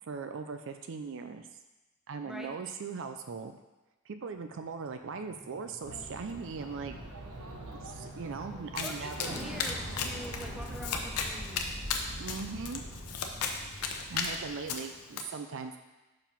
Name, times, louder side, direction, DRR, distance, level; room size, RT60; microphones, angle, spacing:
voice 1, 0.0-1.5 2.1-3.5 4.1-7.0 7.8-9.4 12.2-12.8 14.1-15.8, right 5 dB, 60° right, 7 dB, 0.4 m, -39 dB
sound 1, 4.7-14.6, equal, 20° right, 1.5 m, -45 dB
Chatter, 5.8-11.0, right 2 dB, 85° right, 0.9 m, -46 dB
Domestic sounds home sounds, 8.8-15.2, left 5 dB, 85° left, 0.7 m, -36 dB
voice 2, 8.8-11.9, equal, ahead, 0 dB, 0.6 m, -45 dB
5.3 x 4.7 x 5.8 m, 1.1 s
head